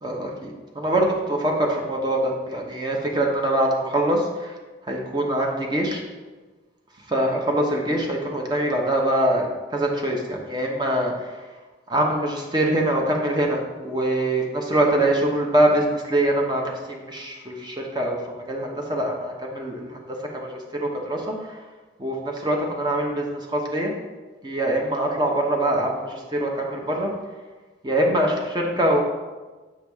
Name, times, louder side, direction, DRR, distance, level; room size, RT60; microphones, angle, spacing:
voice 1, 0.0-4.6 4.9-6.0 7.1-9.5 9.7-11.5 11.9-20.0 20.3-21.6 22.0-23.9 24.4-27.1 27.8-29.0, right 1 dB, 20° right, 0 dB, 0.8 m, -24 dB
7.3 x 4.7 x 3.5 m, 1.3 s
head